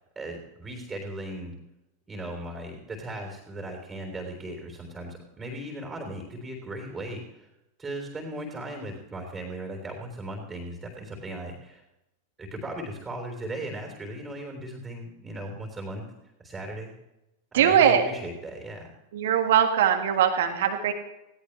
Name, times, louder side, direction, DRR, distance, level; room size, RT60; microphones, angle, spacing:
voice 1, 0.2-1.6 2.1-7.5 7.8-11.8 12.4-16.0 16.4-16.9 17.5-18.9, right 1 dB, 15° right, 2 dB, 3.7 m, -37 dB
voice 2, 17.5-18.1 19.1-20.9, right 9 dB, 55° right, 5 dB, 1.8 m, -21 dB
19.0 x 17.5 x 3.3 m, 0.91 s
figure-of-eight pair, 90°, 0 cm